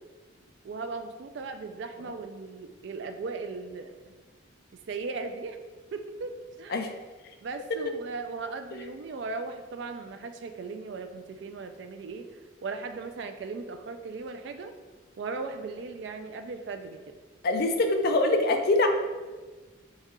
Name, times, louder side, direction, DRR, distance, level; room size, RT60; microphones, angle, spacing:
voice 1, 0.6-4.2 4.9-5.6 5.9-6.8 7.4-12.3 12.6-14.7 15.2-17.0, right 4 dB, 60° right, 7 dB, 0.3 m, -37 dB
voice 2, 17.4-18.9, left 2 dB, 50° left, 5 dB, 0.4 m, -24 dB
4.1 x 2.4 x 3.6 m, 1.3 s
head